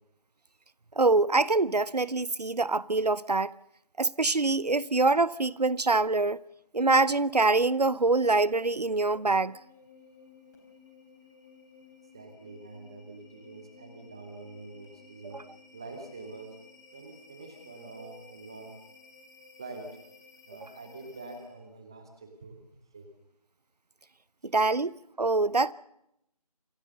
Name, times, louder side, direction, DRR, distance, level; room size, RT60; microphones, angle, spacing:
voice 1, 1.0-3.5 4.0-6.4 6.7-9.6 24.4-25.7, right 3 dB, 80° right, 0.8 m, -25 dB
sound 1, 8.1-21.7, left 4 dB, 25° left, 4.0 m, -55 dB
voice 2, 12.1-16.6 16.9-18.8 19.6-20.0 20.5-22.6 22.9-23.1, right 3 dB, 5° right, 0.8 m, -45 dB
26.5 x 15.0 x 6.7 m
figure-of-eight pair, 165°, 20 cm